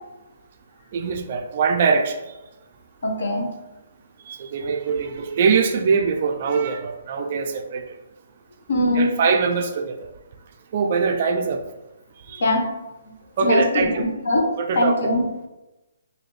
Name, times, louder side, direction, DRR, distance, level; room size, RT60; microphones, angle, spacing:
voice 1, 0.9-2.2 4.3-7.8 8.9-10.0 10.7-11.6 12.3-12.4 13.4-14.1 14.6-14.9, right 5 dB, 35° right, 5 dB, 0.3 m, -22 dB
voice 2, 3.0-3.5 8.7-9.2 12.4-12.7 13.4-14.4 14.7-15.2, left 1 dB, 65° left, 0 dB, 1.0 m, -21 dB
4.0 x 2.7 x 3.1 m, 1.0 s
hypercardioid pair, 170°, 0 cm